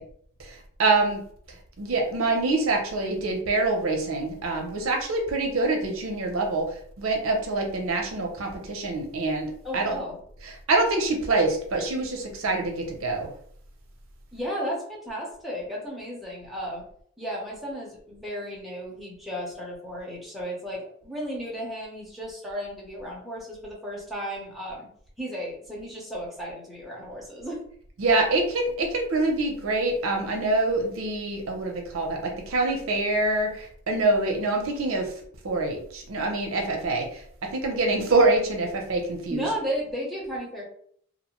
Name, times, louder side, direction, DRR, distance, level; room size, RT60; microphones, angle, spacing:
voice 1, 0.4-1.2 1.5-10.0 10.4-13.3 28.0-35.1 35.4-37.2 37.5-39.4, right 2 dB, 80° right, 2 dB, 0.6 m, -25 dB
voice 2, 9.6-10.2 14.3-16.9 17.2-24.9 25.2-27.6 39.3-40.6, equal, ahead, -4 dB, 0.7 m, -34 dB
2.6 x 2.1 x 2.9 m, 0.62 s
head